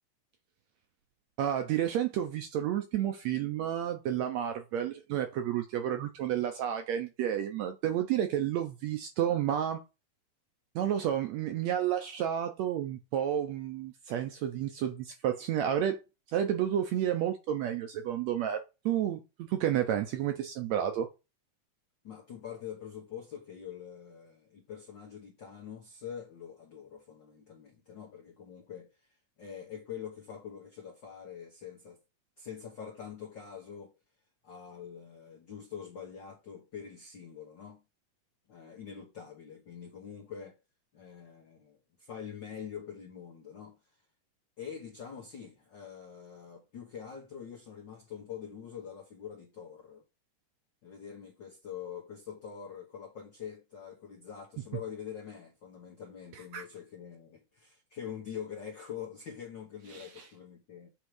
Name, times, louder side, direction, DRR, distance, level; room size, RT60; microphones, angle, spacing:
voice 1, 1.4-9.8 10.7-16.0 16.3-19.2 19.5-21.1 56.5-56.6 59.9-60.1, right 10 dB, 75° right, 1.6 m, -31 dB
voice 2, 22.0-29.1 29.4-32.0 32.4-33.9 34.4-37.8 38.5-40.6 40.9-43.8 44.6-50.0 50.8-60.9, left 8 dB, 80° left, 1.0 m, -45 dB
8.0 x 3.6 x 4.8 m
omnidirectional pair, 3.8 m